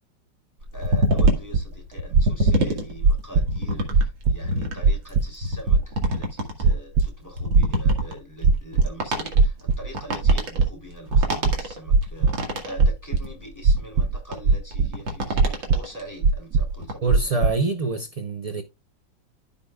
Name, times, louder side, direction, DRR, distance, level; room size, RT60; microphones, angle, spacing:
sound 1, 0.6-16.0 16.5-16.9, equal, 90° right, 2.7 m, -27 dB
voice 1, 0.7-17.4, equal, 10° left, 3.2 m, -43 dB
sound 2, 1.2-1.6 2.1-2.6 3.0-3.6 3.9-4.4 4.8-5.3 5.7-6.1 6.6-7.1 7.5-8.0 8.4-8.9 9.3-9.9 10.2-10.7 11.1-12.3 12.8-13.2 13.6-14.2 14.4-14.9 15.3-15.8 16.2-16.7 17.1-17.5, right 4 dB, 70° right, 1.2 m, -18 dB
voice 2, 17.0-18.6, right 3 dB, 55° right, 0.4 m, -25 dB
14.0 x 5.3 x 2.3 m
omnidirectional pair, 2.0 m